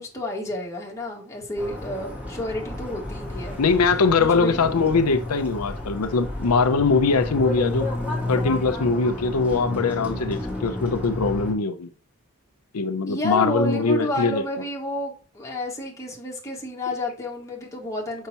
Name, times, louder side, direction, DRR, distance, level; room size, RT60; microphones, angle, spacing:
voice 1, 0.0-3.6 4.2-4.6 13.1-18.3, left 1 dB, 15° left, 1.9 m, -30 dB
sound 1, 1.6-11.5, left 1 dB, 5° right, 2.3 m, -31 dB
voice 2, 3.6-7.9 8.3-11.9 12.7-14.4, left 4 dB, 90° left, 0.6 m, -22 dB
6.8 x 5.6 x 2.9 m
head